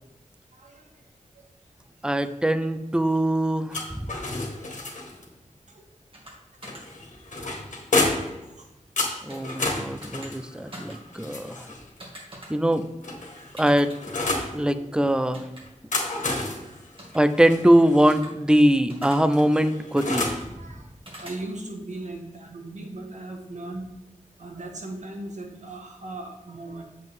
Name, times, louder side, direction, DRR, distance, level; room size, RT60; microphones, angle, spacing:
voice 1, 0.5-1.0 1.3-1.5 4.6-5.0 5.6-5.8 7.3-7.7 8.4-8.7 13.3-13.5 14.3-14.8 16.4-16.8 17.1-17.2 20.6-20.9 21.2-23.8 24.4-26.8, right 2 dB, 65° right, 2 dB, 1.6 m, -39 dB
voice 2, 2.0-4.0 9.2-11.6 12.5-12.9 13.6-13.9 14.5-15.5 17.1-20.3, right 1 dB, 5° right, 11 dB, 0.5 m, -22 dB
sound 1, 3.7-5.3 6.6-8.4 9.0-11.9 12.7-14.5 15.7-18.2 19.3-20.5, left 2 dB, 70° left, 1.8 m, -30 dB
sound 2, 6.1-6.3 6.6-6.8 9.3-9.5 10.0-10.3 10.7-11.0 12.0-12.5 13.6-14.0 15.3-15.6 16.0-16.2 17.0-17.2 18.1-18.3 18.9-19.3 20.3-20.5 21.0-21.4, right 1 dB, 45° right, 2.4 m, -43 dB
8.0 x 7.5 x 3.7 m, 0.99 s
wide cardioid pair, 105°, 13 cm